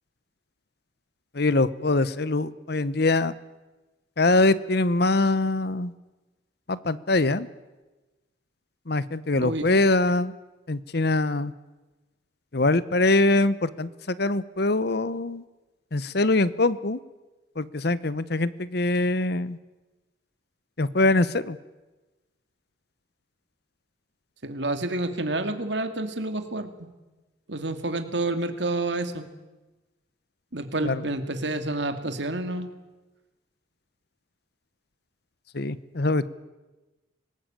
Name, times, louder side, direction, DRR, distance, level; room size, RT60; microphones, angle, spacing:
voice 1, 1.3-3.3 4.2-5.9 6.7-7.5 8.9-10.3 10.7-11.5 12.5-15.4 15.9-17.0 17.6-19.6 20.8-21.6 30.8-31.0 35.5-36.3, left 2 dB, 55° left, 17 dB, 0.9 m, -23 dB
voice 2, 9.4-9.8 24.4-26.9 27.5-29.3 30.5-32.7, right 2 dB, 65° right, 8 dB, 2.5 m, -29 dB
25.5 x 19.5 x 9.0 m, 1.2 s
head